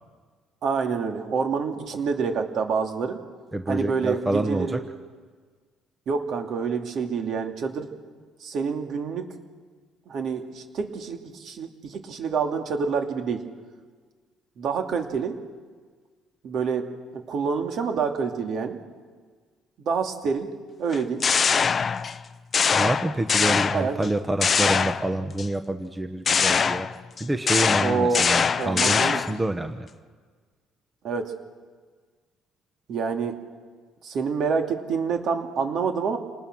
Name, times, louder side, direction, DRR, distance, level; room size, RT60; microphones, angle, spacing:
voice 1, 0.6-3.2 3.7-4.8 6.1-7.9 8.4-9.3 10.1-13.4 14.6-15.4 16.4-16.9 17.1-18.8 19.8-20.5 20.8-21.2 23.7-24.1 27.8-28.3 28.6-29.2 31.0-31.3 32.9-33.4 34.0-36.2, right 5 dB, 55° right, 5 dB, 2.5 m, -27 dB
voice 2, 3.5-4.8 22.7-29.9, right 1 dB, 10° right, 8 dB, 0.9 m, -27 dB
sound 1, 20.9-22.2 22.5-24.1 24.4-25.5 26.3-29.4, left 6 dB, 30° left, 0.6 m, -23 dB
28.0 x 19.5 x 6.1 m, 1.5 s
cardioid pair, 130°, 0 cm